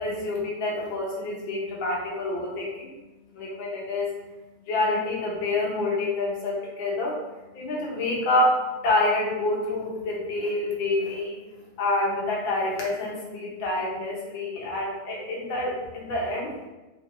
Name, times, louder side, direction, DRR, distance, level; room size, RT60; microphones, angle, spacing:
voice 1, 0.0-2.9 3.3-4.1 4.7-7.2 7.5-11.4 11.8-16.7, left 2 dB, 65° left, -3 dB, 1.7 m, -27 dB
4.3 x 2.6 x 3.0 m, 1.1 s
omnidirectional pair, 2.4 m